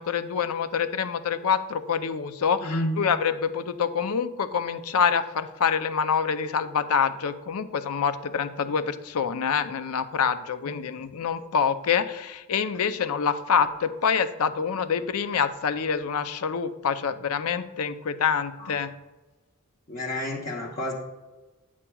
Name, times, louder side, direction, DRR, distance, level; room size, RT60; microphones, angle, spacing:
voice 1, 0.0-18.9, left 6 dB, 80° left, 11 dB, 0.5 m, -26 dB
voice 2, 2.6-3.0 10.6-10.8 18.6-18.7 19.9-20.9, left 1 dB, 40° left, -5 dB, 0.8 m, -30 dB
9.7 x 7.3 x 2.3 m, 1.2 s
head